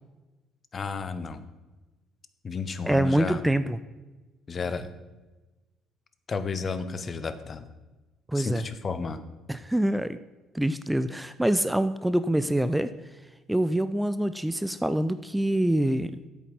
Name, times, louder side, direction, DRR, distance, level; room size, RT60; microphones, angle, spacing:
voice 1, 0.7-1.4 2.4-3.4 4.5-4.9 6.3-7.7 8.3-9.2, left 4 dB, 40° left, 11 dB, 0.8 m, -32 dB
voice 2, 2.8-3.8 8.3-8.6 9.5-10.2 10.5-12.9 13.5-16.2, right 1 dB, 5° right, 13 dB, 0.4 m, -25 dB
8.4 x 7.1 x 5.4 m, 1.2 s
figure-of-eight pair, 50°, 0 cm